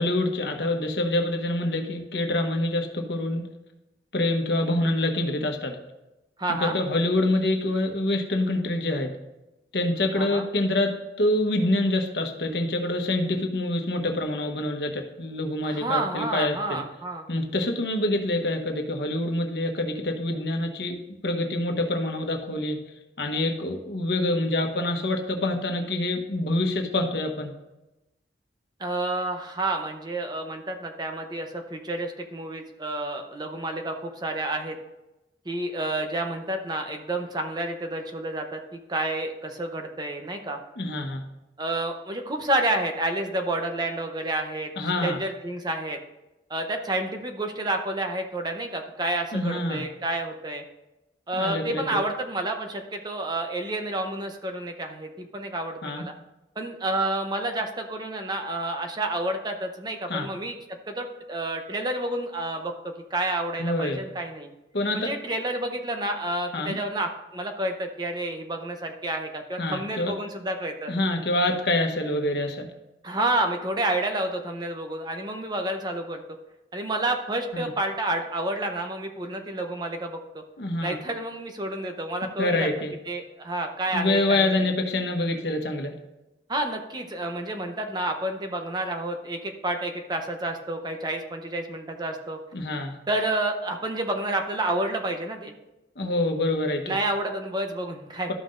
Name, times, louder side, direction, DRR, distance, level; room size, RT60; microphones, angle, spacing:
voice 1, 0.0-3.4 4.1-5.8 6.6-9.2 9.7-16.8 17.3-21.0 21.2-22.8 23.2-27.5 40.8-41.2 44.8-45.2 49.3-49.8 51.4-51.8 55.8-56.0 60.1-60.3 63.6-64.0 64.7-65.1 66.5-66.8 69.6-70.1 70.9-72.7 77.5-77.7 80.6-80.9 82.4-82.9 83.9-85.9 92.5-93.0 96.0-97.0, left 1 dB, 70° left, 4 dB, 1.1 m, -26 dB
voice 2, 6.4-6.8 10.1-10.5 15.6-17.3 28.8-34.8 35.5-40.6 41.6-44.7 45.0-46.0 46.5-50.6 51.3-56.1 56.6-60.5 60.9-64.5 64.9-70.9 73.0-76.2 76.7-80.4 80.8-82.7 83.1-84.7 86.5-92.4 93.1-95.5 96.9-98.3, right 1 dB, 25° right, 4 dB, 0.8 m, -29 dB
13.0 x 5.7 x 2.6 m, 0.98 s
head